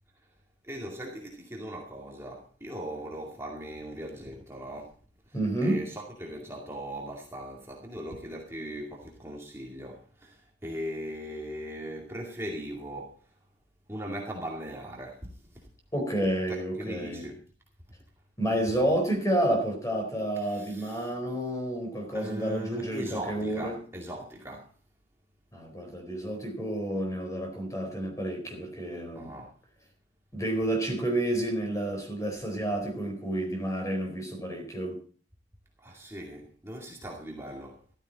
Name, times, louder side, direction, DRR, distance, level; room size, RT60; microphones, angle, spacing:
voice 1, 0.6-5.0 5.3-5.4 5.6-13.2 13.9-15.7 16.5-17.4 20.4-21.1 22.1-24.7 29.1-29.5 35.8-37.8, equal, 15° right, 2.3 m, -39 dB
voice 2, 5.3-5.8 15.9-17.3 18.4-23.8 25.5-29.3 30.3-35.0, right 1 dB, 20° left, 4.2 m, -30 dB
14.0 x 13.5 x 4.1 m
head